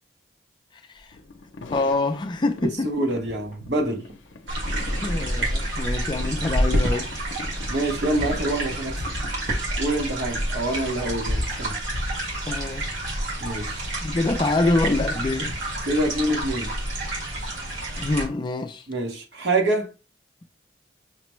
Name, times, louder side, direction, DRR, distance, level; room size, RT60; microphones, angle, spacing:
sound 1, 1.0-1.1 1.6-1.7 1.9-2.3 2.6-2.9 3.5-3.6 4.2-4.3 4.6-7.0 7.3-7.8 8.2-8.4 8.8-9.2 9.5-9.9 10.2-10.6 11.0-11.2 11.4-11.5 11.8-12.1 12.6-12.8 13.0-13.1 13.4-13.8 14.2-14.3, equal, 40° right, 0.7 m, -30 dB
sound 2, 1.1-10.0, left 3 dB, 85° left, 0.5 m, -42 dB
voice 1, 1.7-2.9 5.0-7.1 12.5-12.9 14.0-15.5 18.0-18.9, left 2 dB, 25° left, 0.3 m, -25 dB
voice 2, 2.8-4.0 7.7-9.0 9.8-11.7 13.4-13.9 15.9-16.7 18.9-19.9, right 1 dB, 65° right, 1.0 m, -26 dB
sound 3, 4.5-18.3, right 1 dB, 90° right, 1.7 m, -29 dB
5.8 x 2.1 x 3.0 m
head